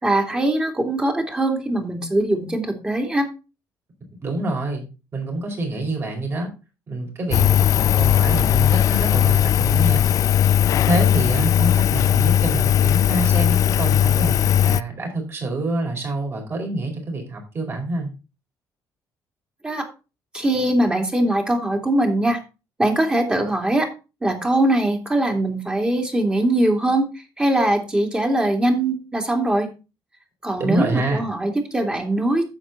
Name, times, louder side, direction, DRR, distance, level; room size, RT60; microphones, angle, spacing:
voice 1, 0.0-3.3 19.6-19.9 20.3-22.4 22.8-23.9 24.2-27.1 27.4-29.7 30.4-32.4, right 1 dB, 15° right, 3 dB, 2.5 m, -21 dB
voice 2, 4.2-4.8 5.1-6.5 6.9-10.1 10.8-18.1 30.6-31.2, right 2 dB, 35° right, 1 dB, 4.6 m, -26 dB
Engine, 7.3-14.8, left 10 dB, 50° left, 0.4 m, -18 dB
9.8 x 7.6 x 3.9 m, 0.29 s
cardioid pair, 130°, 7 cm